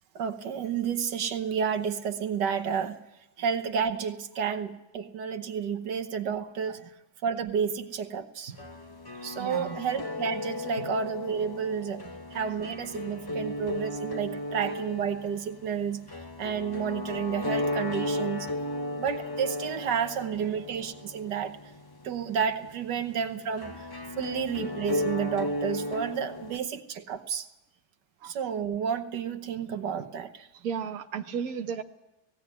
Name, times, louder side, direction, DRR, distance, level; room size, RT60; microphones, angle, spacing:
voice 1, 0.1-3.0 3.4-6.8 7.2-8.5 9.2-12.0 12.3-16.0 16.4-18.5 19.0-21.6 22.0-23.7 24.2-27.5 28.2-30.3, right 7 dB, 80° right, 8 dB, 1.7 m, -31 dB
sound 1, 8.6-26.6, left 1 dB, 20° left, 0.7 m, -35 dB
voice 2, 9.1-9.8 10.8-10.9 12.0-12.2 13.3-13.5 20.4-20.6 22.0-22.1 23.0-23.1 23.7-23.8 28.2-28.3 29.6-29.7 30.5-31.8, right 7 dB, 60° right, 5 dB, 1.4 m, -37 dB
18.5 x 16.0 x 9.6 m, 0.96 s
omnidirectional pair, 1.8 m